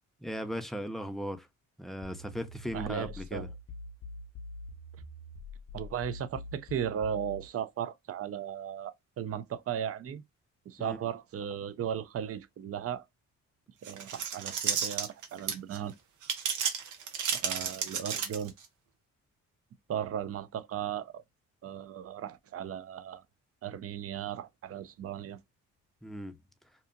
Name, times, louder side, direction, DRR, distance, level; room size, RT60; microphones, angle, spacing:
voice 1, 0.2-1.5 1.8-3.5 10.8-11.0 26.0-26.4, equal, ahead, 0.5 m, -37 dB
sound 1, 2.0-7.5, left 2 dB, 50° left, 0.6 m, -45 dB
voice 2, 2.7-3.5 5.7-10.2 10.7-13.0 13.8-15.9 17.3-18.5 19.9-21.1 21.6-23.2 23.6-25.4, right 9 dB, 50° right, 0.5 m, -36 dB
sound 2, 13.8-15.8 16.2-18.7, right 7 dB, 80° right, 0.9 m, -32 dB
2.8 x 2.4 x 2.3 m
cardioid pair, 90°, 30 cm